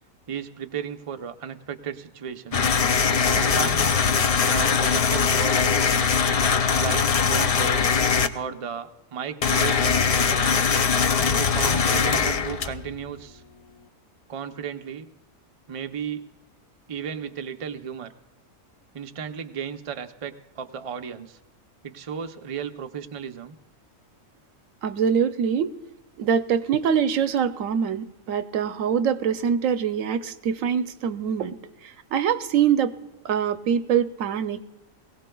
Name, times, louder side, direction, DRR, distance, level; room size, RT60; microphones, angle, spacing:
voice 1, 0.3-2.7 3.3-4.0 4.4-6.1 6.7-7.9 8.3-10.6 11.4-13.4 14.3-15.1 15.7-16.3 16.9-18.1 18.9-21.4 21.8-23.5, right 7 dB, 40° right, 6 dB, 0.5 m, -34 dB
sound 1, 2.5-8.3 9.4-13.0, left 6 dB, 70° left, 0.3 m, -21 dB
voice 2, 24.8-25.7 26.2-31.6 32.1-32.9 33.2-34.6, right 8 dB, 90° right, 11 dB, 1.1 m, -24 dB
22.0 x 17.0 x 2.3 m, 1.1 s
omnidirectional pair, 1.4 m